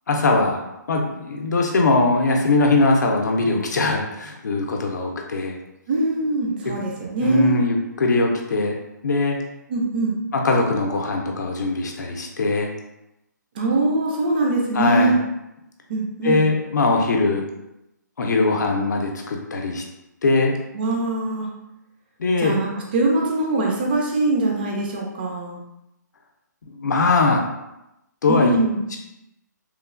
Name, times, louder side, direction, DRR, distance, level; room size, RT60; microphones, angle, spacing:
voice 1, 0.1-0.6 0.9-5.6 7.2-8.8 9.0-9.4 10.3-12.7 14.7-15.1 16.2-17.4 18.2-19.8 20.2-20.5 22.2-22.6 26.7-27.4 28.2-28.6, left 3 dB, 65° left, 1 dB, 0.5 m, -21 dB
voice 2, 5.9-7.6 9.7-10.2 13.5-15.1 15.9-16.4 20.7-21.5 22.4-25.6 28.3-28.8, right 2 dB, 30° right, -1 dB, 0.3 m, -22 dB
3.0 x 2.2 x 2.4 m, 0.89 s
hypercardioid pair, 160°, 10 cm